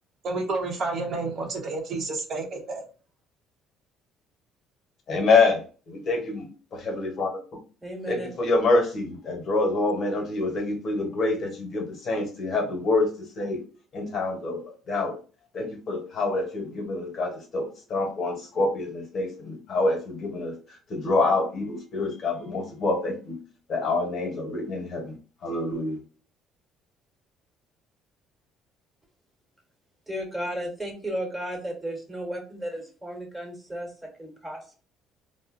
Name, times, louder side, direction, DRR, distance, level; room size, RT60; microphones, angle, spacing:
voice 1, 0.2-2.8, right 3 dB, 50° right, 0.9 m, -30 dB
voice 2, 5.1-7.4 8.1-13.6 13.9-15.2 15.5-23.4 23.7-25.2 25.4-26.0, left 3 dB, 50° left, 1.0 m, -26 dB
voice 3, 7.8-8.3 30.1-34.8, right 1 dB, 15° right, 1.3 m, -34 dB
3.7 x 2.1 x 2.5 m
cardioid pair, 105°, 0 cm